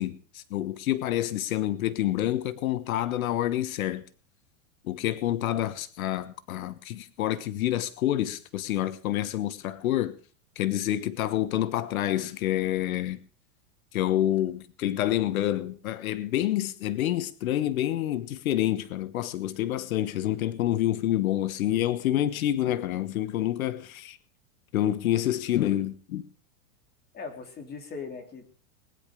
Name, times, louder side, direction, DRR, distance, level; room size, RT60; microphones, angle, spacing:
voice 1, 0.0-4.0 4.8-10.2 10.6-13.2 13.9-24.2 24.7-26.2, left 13 dB, 75° left, 1.3 m, -28 dB
voice 2, 27.1-28.5, left 5 dB, 20° left, 3.2 m, -39 dB
20.0 x 10.5 x 5.1 m
supercardioid pair, 140°, 42 cm